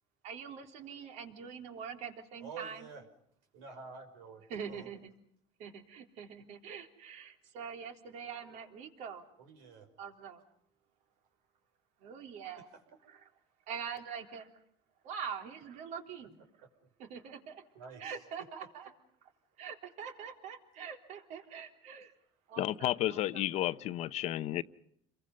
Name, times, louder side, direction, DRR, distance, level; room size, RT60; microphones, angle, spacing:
voice 1, 0.2-2.9 4.5-5.1 5.6-9.2 10.0-10.4 12.0-12.7 13.1-13.3 13.7-14.5 15.0-16.4 17.0-17.6 18.0-18.9 19.6-22.1 22.5-23.6, right 7 dB, 60° right, 3.5 m, -44 dB
voice 2, 2.4-3.1 3.5-4.9 9.4-9.9 12.6-12.7 17.7-18.1 18.4-18.7, right 5 dB, 90° right, 5.8 m, -49 dB
voice 3, 22.6-24.6, left 14 dB, 55° left, 0.9 m, -32 dB
29.5 x 23.0 x 5.4 m
cardioid pair, 130°, 14 cm